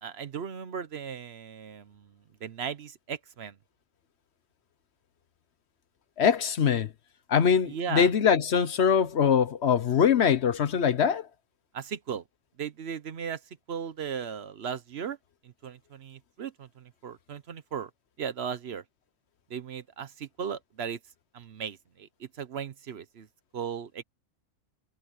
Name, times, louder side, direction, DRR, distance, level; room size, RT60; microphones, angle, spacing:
voice 1, 0.0-2.1 2.4-3.5 7.7-8.1 11.7-12.2 12.6-13.4 13.7-15.2 15.4-17.9 18.2-18.8 19.5-21.0 21.3-23.3 23.5-24.0, right 7 dB, 60° right, 1.0 m, -37 dB
voice 2, 6.2-6.9 7.3-11.3, left 7 dB, 60° left, 1.1 m, -23 dB
omnidirectional pair, 1.3 m